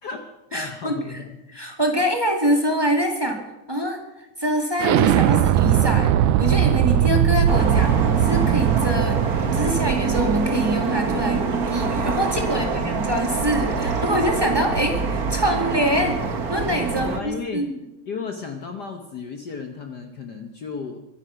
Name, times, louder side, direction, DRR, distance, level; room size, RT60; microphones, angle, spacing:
voice 1, 0.0-1.4 12.5-13.0 17.0-17.6 18.1-21.0, left 5 dB, 85° left, 5 dB, 0.9 m, -34 dB
voice 2, 0.5-1.2 1.5-3.4 3.7-4.0 4.4-6.1 6.4-7.9 8.2-9.2 9.5-17.7, equal, 10° right, 2 dB, 1.8 m, -24 dB
Explosion, 4.8-10.3, right 11 dB, 80° right, 2.1 m, -20 dB
sound 1, 7.5-17.2, right 5 dB, 50° right, 1.1 m, -25 dB
24.0 x 10.0 x 5.8 m, 0.93 s
omnidirectional pair, 3.5 m